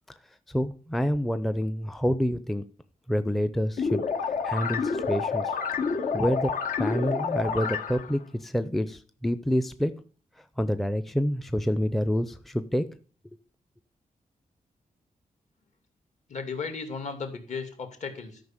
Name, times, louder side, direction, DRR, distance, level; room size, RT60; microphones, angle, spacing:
voice 1, 0.5-2.7 3.1-4.1 4.4-5.5 6.1-6.5 6.8-10.0 10.4-12.9, equal, ahead, 11 dB, 0.5 m, -27 dB
sound 1, 3.8-8.2, left 5 dB, 80° left, 2.2 m, -29 dB
voice 2, 16.3-18.4, left 5 dB, 60° left, 6 dB, 2.5 m, -35 dB
13.0 x 5.6 x 7.4 m, 0.41 s
wide cardioid pair, 180°, 14 cm